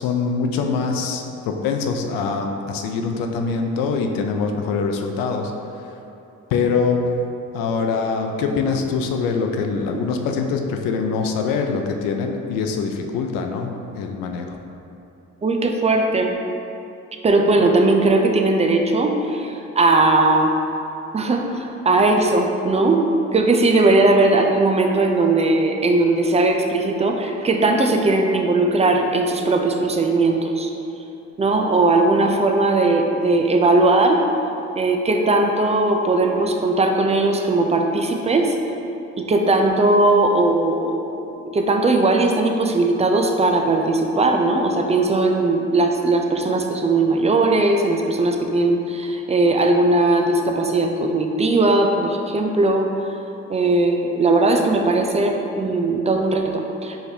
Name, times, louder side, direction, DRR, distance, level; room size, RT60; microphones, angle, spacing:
voice 1, 0.0-6.0 6.5-7.1 7.5-14.6, left 5 dB, 85° left, 4 dB, 0.5 m, -24 dB
voice 2, 15.4-16.3 17.2-20.5 21.1-23.0 23.3-30.7 31.4-34.2 34.8-38.5 39.2-41.1 41.5-52.9 53.5-57.0, right 2 dB, 20° right, 3 dB, 0.4 m, -18 dB
4.7 x 3.2 x 2.7 m, 2.8 s
supercardioid pair, 75°, 33 cm